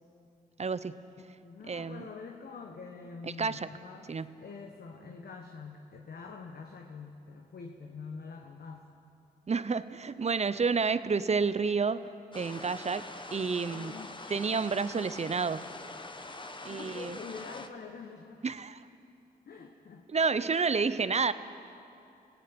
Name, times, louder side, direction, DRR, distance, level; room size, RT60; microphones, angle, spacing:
voice 1, 0.6-1.0 1.7-2.1 3.4-3.7 4.1-4.3 9.5-12.1 12.3-13.9 14.3-15.7 16.6-17.2 18.4-18.8 20.1-21.3, right 5 dB, 40° right, 14 dB, 0.8 m, -30 dB
voice 2, 1.4-4.1 4.4-8.9 13.7-14.2 16.7-18.5 19.5-20.1, left 5 dB, 70° left, 3 dB, 1.4 m, -45 dB
sound 1, 12.3-17.7, left 2 dB, 30° left, 1.5 m, -44 dB
26.0 x 17.0 x 6.1 m, 2.6 s
supercardioid pair, 50°, 17 cm